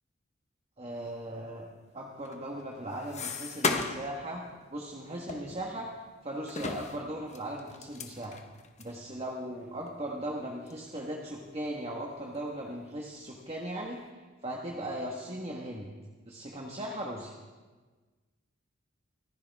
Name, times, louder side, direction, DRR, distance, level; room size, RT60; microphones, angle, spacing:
voice 1, 0.8-1.7 1.9-4.4 4.7-5.9 6.2-8.4 8.8-14.0 14.4-15.9 16.2-17.3, right 1 dB, 30° right, -1 dB, 1.4 m, -38 dB
sound 1, 2.2-4.2 4.5-4.7 5.3-6.1 6.5-9.0 9.5-9.6 9.9-10.0 10.7-10.9 11.3-12.0 12.4-13.1, left 4 dB, 35° left, 1.1 m, -36 dB
24.5 x 15.0 x 3.5 m, 1.4 s
head